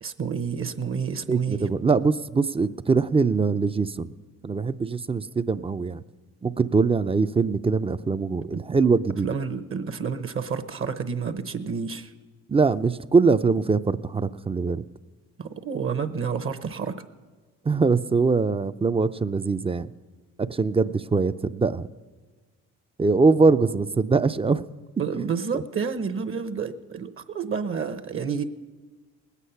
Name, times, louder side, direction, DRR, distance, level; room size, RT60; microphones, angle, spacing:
voice 1, 0.0-1.7 8.5-8.6 9.2-12.1 15.4-17.1 25.0-28.4, right 6 dB, 45° right, 10 dB, 0.9 m, -29 dB
voice 2, 1.3-4.1 4.4-6.0 6.4-9.3 12.5-14.8 17.6-19.9 20.5-21.9 23.0-24.7 25.1-25.6, right 4 dB, 20° right, 14 dB, 0.4 m, -22 dB
19.5 x 8.3 x 5.7 m, 1.3 s
supercardioid pair, 70°, 32 cm